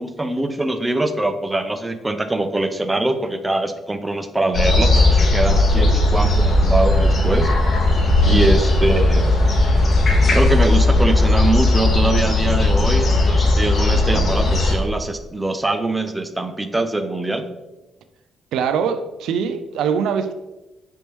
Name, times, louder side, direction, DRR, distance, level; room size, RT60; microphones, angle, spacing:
voice 1, 0.0-7.5 8.2-9.3 10.3-17.5, right 2 dB, 15° right, 8 dB, 0.4 m, -23 dB
sound 1, 4.5-14.8, left 2 dB, 45° left, 1.1 m, -16 dB
voice 2, 8.2-8.5 18.5-20.3, right 7 dB, 80° right, 9 dB, 0.3 m, -23 dB
5.1 x 3.4 x 3.0 m, 1.0 s
cardioid pair, 90°, 0 cm